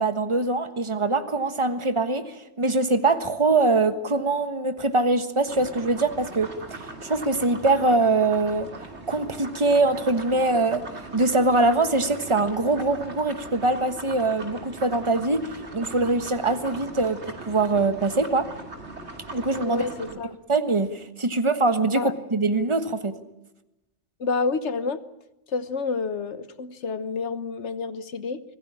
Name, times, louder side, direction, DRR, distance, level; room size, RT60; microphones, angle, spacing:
voice 1, 0.0-8.7 9.1-10.8 11.1-15.5 15.7-18.5 19.3-19.8 20.5-23.1, right 3 dB, 25° right, 10 dB, 1.4 m, -23 dB
sound 1, 5.5-20.1, right 2 dB, 70° right, 3.0 m, -40 dB
voice 2, 19.6-20.3 21.9-22.1 24.2-25.0 25.5-28.4, left 4 dB, 75° left, 13 dB, 1.4 m, -29 dB
25.0 x 16.0 x 9.9 m, 0.95 s
omnidirectional pair, 1.2 m